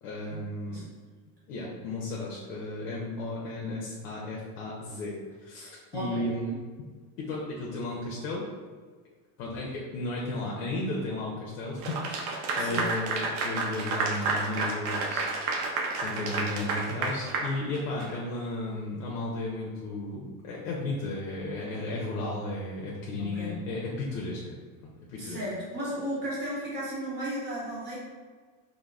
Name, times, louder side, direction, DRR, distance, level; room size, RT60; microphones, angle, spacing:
voice 1, 0.0-0.9 1.5-6.5 7.2-8.4 9.4-12.2 12.5-24.4 24.8-25.4, left 2 dB, 65° left, -3 dB, 0.7 m, -34 dB
voice 2, 5.9-6.2 12.6-12.8 23.2-23.5 25.2-28.0, equal, 25° right, -7 dB, 0.9 m, -34 dB
Clapping / Applause, 11.8-18.2, right 3 dB, 80° right, 0.6 m, -30 dB
3.4 x 2.1 x 2.3 m, 1.5 s
supercardioid pair, 145°, 45 cm